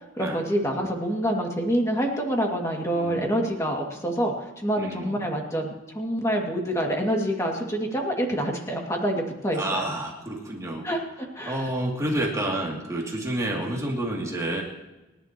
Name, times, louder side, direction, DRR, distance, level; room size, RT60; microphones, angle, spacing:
voice 1, 0.2-9.8 10.8-11.7 12.1-12.2, equal, 15° left, 0 dB, 2.2 m, -27 dB
voice 2, 2.9-3.5 4.8-5.2 9.5-10.9 11.5-14.6, right 1 dB, 15° right, -3 dB, 2.7 m, -29 dB
29.5 x 11.0 x 3.0 m, 1.1 s
head